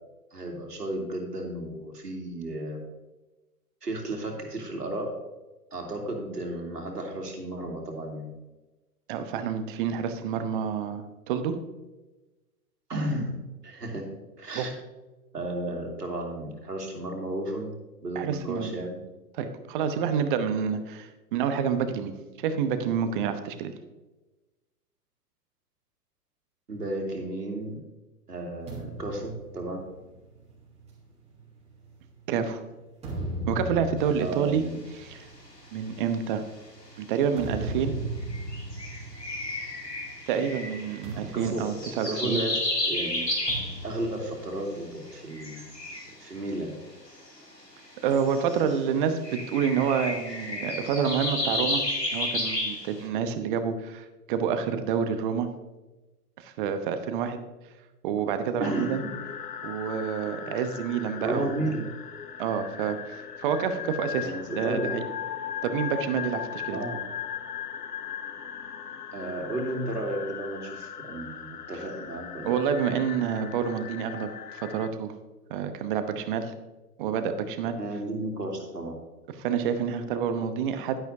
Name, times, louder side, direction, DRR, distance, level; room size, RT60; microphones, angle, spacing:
voice 1, 0.3-2.8 3.8-5.2 5.7-8.3 12.9-13.4 13.6-14.7 15.3-17.7 18.0-19.0 26.7-27.8 28.3-29.8 34.2-34.8 41.1-41.7 42.0-42.6 42.9-43.3 43.8-46.8 58.6-59.2 61.2-61.9 64.2-65.0 66.7-67.0 69.1-72.5 77.8-79.0, right 1 dB, 75° right, 2 dB, 2.4 m, -33 dB
voice 2, 9.1-11.6 14.5-14.7 18.1-18.7 19.3-23.7 32.3-32.6 33.5-34.6 34.9-35.3 35.7-36.4 37.0-37.9 40.3-42.4 48.0-51.8 52.1-55.5 56.4-57.4 58.0-59.0 59.6-61.7 62.4-65.0 65.6-66.8 72.4-75.1 75.5-76.5 77.0-77.8 79.4-81.0, right 7 dB, 35° right, 9 dB, 0.9 m, -28 dB
sound 1, 28.7-32.3 32.8-40.2 40.5-40.7 41.0-42.6 43.5-45.2, right 1 dB, 15° right, 3.1 m, -38 dB
sound 2, 37.8-37.9 38.2-44.0 45.1-46.4 47.1-48.8 49.2-53.0, left 1 dB, 90° left, 2.4 m, -32 dB
sound 3, 58.6-74.9, left 9 dB, 75° left, 0.9 m, -38 dB
11.5 x 10.5 x 2.7 m, 1.1 s
figure-of-eight pair, 110°, 47 cm